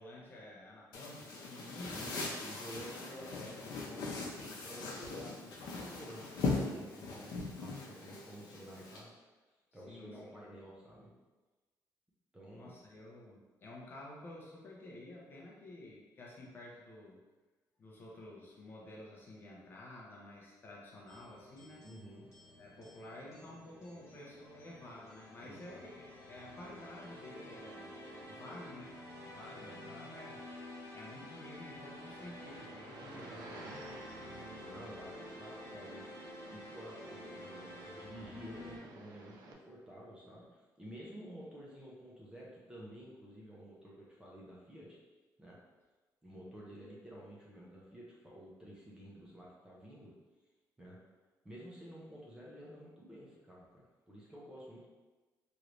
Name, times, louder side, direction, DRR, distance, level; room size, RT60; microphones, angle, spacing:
voice 1, 0.0-2.3 9.7-10.4 12.5-17.2 17.8-21.9 22.6-27.9 28.2-30.5 30.9-33.9, left 1 dB, 30° left, -3 dB, 0.6 m, -51 dB
sound 1, 0.9-9.0, left 3 dB, 70° left, 0.7 m, -40 dB
voice 2, 1.9-9.1 9.7-11.1 12.3-12.7 21.8-22.3 25.4-25.8 29.4-29.9 33.1-33.8 34.6-36.1 36.5-45.0 45.4-45.6 46.2-50.1 50.8-51.0 51.4-54.8, equal, 10° right, -5 dB, 0.5 m, -51 dB
sound 2, 21.1-38.8, left 1 dB, 45° left, 1.1 m, -50 dB
sound 3, 31.9-39.5, right 3 dB, 80° right, 0.4 m, -55 dB
3.1 x 3.0 x 2.5 m, 1.2 s
cardioid pair, 170°, 7 cm